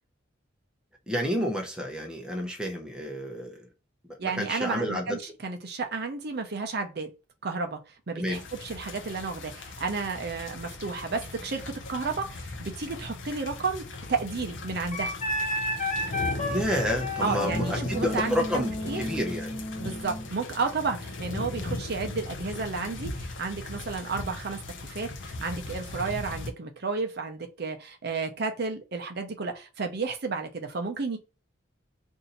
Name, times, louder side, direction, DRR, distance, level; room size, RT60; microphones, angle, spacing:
voice 1, 1.1-3.7 4.2-5.2 8.2-8.4 16.5-19.5, equal, 5° right, 0.7 m, -30 dB
voice 2, 4.2-7.1 7.4-7.8 8.1-15.2 17.2-19.0 19.8-31.2, right 4 dB, 55° right, 0.6 m, -32 dB
sound 1, 8.3-26.5, left 2 dB, 65° left, 0.6 m, -38 dB
Wind instrument woodwind instrument, 14.9-20.3, left 1 dB, 35° left, 0.9 m, -32 dB
2.7 x 2.6 x 4.1 m
head